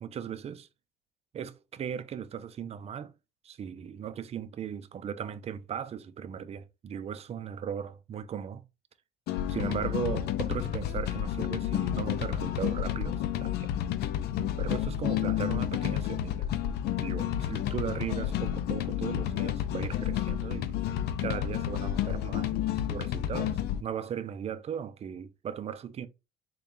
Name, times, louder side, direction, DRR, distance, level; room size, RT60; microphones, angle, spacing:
voice 1, 0.0-0.7 1.3-3.1 3.4-8.6 9.5-13.7 14.6-16.5 17.0-20.7 21.2-26.1, right 8 dB, 40° right, 0.4 m, -37 dB
sound 1, 9.3-23.8, left 11 dB, 75° left, 0.4 m, -30 dB
4.0 x 2.3 x 3.6 m
cardioid pair, 110°, 17 cm